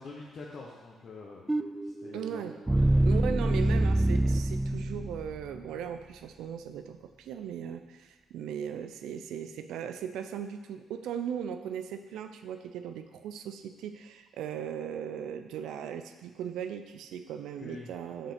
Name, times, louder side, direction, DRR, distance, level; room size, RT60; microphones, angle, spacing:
voice 1, 0.0-3.8 17.5-17.9, left 3 dB, 55° left, -3 dB, 1.0 m, -47 dB
sound 1, 1.5-5.6, right 1 dB, 10° right, 0.3 m, -26 dB
voice 2, 2.1-2.6 3.0-18.3, right 8 dB, 85° right, 9 dB, 0.5 m, -38 dB
5.7 x 5.4 x 5.1 m, 1.3 s
cardioid pair, 90°, 0 cm